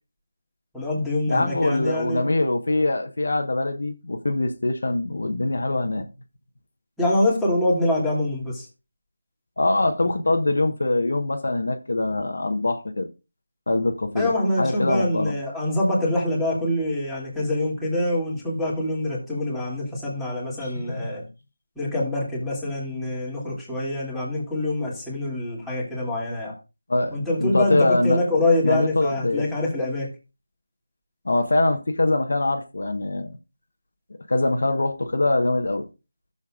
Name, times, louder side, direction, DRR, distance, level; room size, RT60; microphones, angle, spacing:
voice 1, 0.7-2.3 7.0-8.7 14.1-21.2 21.8-26.5 27.1-30.1, left 1 dB, ahead, 2.7 m, -25 dB
voice 2, 1.3-6.1 9.6-13.1 13.7-14.3 14.6-15.3 20.6-21.1 26.9-28.2 28.6-29.5 31.2-33.4 34.3-35.9, left 2 dB, 65° left, 1.2 m, -23 dB
13.5 x 7.1 x 2.4 m
figure-of-eight pair, 165°, 0 cm